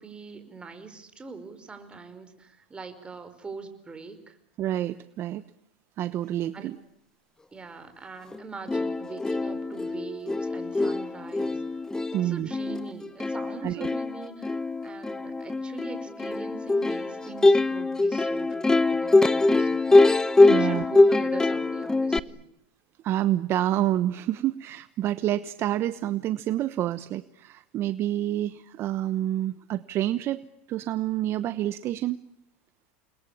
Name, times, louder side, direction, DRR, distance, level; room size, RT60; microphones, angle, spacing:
voice 1, 0.0-4.4 6.5-6.7 7.5-11.7 12.2-19.9 20.2-22.4, right 4 dB, 15° right, 9 dB, 5.2 m, -42 dB
voice 2, 4.6-5.4 6.0-6.8 12.1-12.5 13.6-13.9 20.5-20.8 23.0-32.2, right 13 dB, 45° right, 14 dB, 1.0 m, -28 dB
Plucked string instrument, 8.3-8.4 8.7-22.2, left 2 dB, 10° left, 1.0 m, -23 dB
29.0 x 21.5 x 8.6 m, 0.77 s
supercardioid pair, 110°, 6 cm